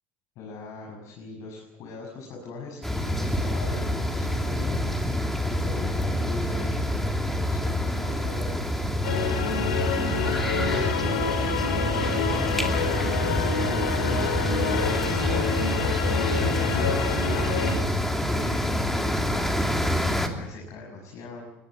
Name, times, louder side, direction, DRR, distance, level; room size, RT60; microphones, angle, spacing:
voice 1, 0.3-6.8 7.3-8.9 9.1-21.5, left 3 dB, 65° left, -1 dB, 6.8 m, -41 dB
sound 1, 2.8-20.3, equal, 5° left, 3.0 m, -27 dB
sound 2, 9.0-17.8, left 5 dB, 90° left, 5.0 m, -27 dB
21.5 x 17.5 x 9.6 m, 0.91 s
supercardioid pair, 95°, 6 cm